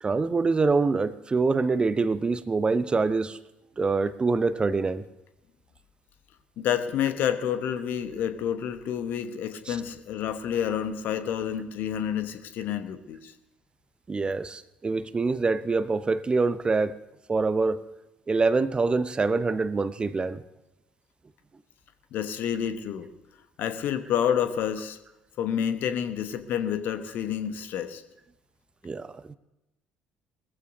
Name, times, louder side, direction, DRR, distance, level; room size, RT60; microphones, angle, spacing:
voice 1, 0.0-3.4 3.8-5.0 9.7-9.8 14.1-17.0 17.3-17.8 18.3-20.4 28.8-29.4, right 4 dB, 25° right, 0.6 m, -25 dB
voice 2, 6.6-13.3 22.1-23.1 23.6-25.0 25.4-28.0, left 9 dB, 55° left, 1.1 m, -29 dB
21.0 x 14.5 x 2.7 m
figure-of-eight pair, 50°, 4 cm